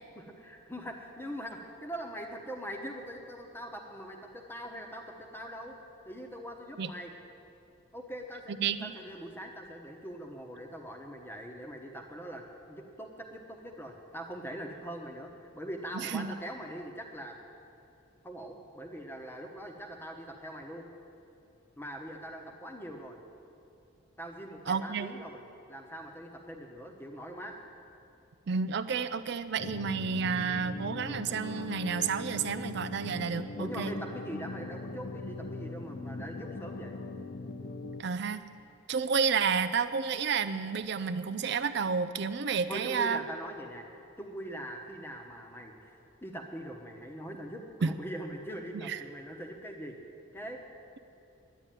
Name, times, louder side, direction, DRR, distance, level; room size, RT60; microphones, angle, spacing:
voice 1, 0.1-5.8 6.1-7.1 7.9-17.4 18.2-20.8 21.8-23.2 24.2-25.4 25.7-27.6 33.6-37.0 42.7-43.9 44.2-50.0 50.3-50.6, equal, 10° left, 3 dB, 1.1 m, -42 dB
voice 2, 8.6-8.9 15.9-16.3 24.7-25.1 28.5-33.9 38.0-38.4 38.9-43.2 47.8-47.9 48.8-49.0, right 6 dB, 55° right, 12 dB, 0.4 m, -30 dB
sound 1, 29.6-38.0, left 2 dB, 50° left, 0.6 m, -40 dB
10.5 x 9.8 x 9.1 m, 2.7 s
head